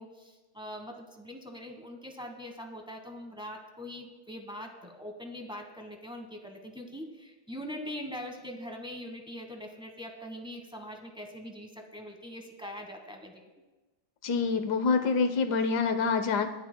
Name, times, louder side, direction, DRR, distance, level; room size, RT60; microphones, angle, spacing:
voice 1, 0.0-13.4, equal, 5° right, 3 dB, 0.9 m, -42 dB
voice 2, 14.2-16.5, left 5 dB, 65° left, 8 dB, 1.3 m, -26 dB
24.0 x 10.5 x 2.2 m, 1.2 s
omnidirectional pair, 2.1 m